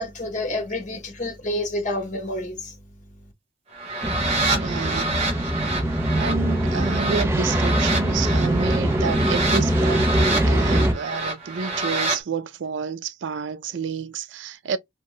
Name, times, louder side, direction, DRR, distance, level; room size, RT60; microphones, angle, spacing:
voice 1, 0.0-2.7, left 1 dB, 40° left, 1.0 m, -28 dB
sound 1, 3.7-12.2, right 2 dB, 35° right, 1.1 m, -28 dB
sound 2, 4.0-10.9, right 1 dB, 15° right, 0.5 m, -22 dB
voice 2, 4.5-5.1 6.2-14.8, right 6 dB, 85° right, 0.4 m, -30 dB
2.6 x 2.2 x 2.9 m
head